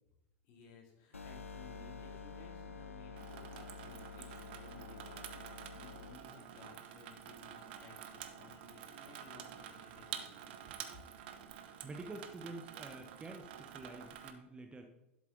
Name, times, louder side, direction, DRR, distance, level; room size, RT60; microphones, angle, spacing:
voice 1, 0.4-10.5, left 4 dB, 45° left, 1 dB, 2.8 m, -58 dB
sound 1, 1.1-6.1, left 5 dB, 80° left, 0.8 m, -49 dB
Water tap faucet / Sink (filling or washing), 3.2-14.3, right 9 dB, 50° right, 1.0 m, -49 dB
voice 2, 11.8-14.8, right 2 dB, 15° right, 5 dB, 1.0 m, -48 dB
12.0 x 7.3 x 3.9 m, 0.91 s
figure-of-eight pair, 90°, 7 cm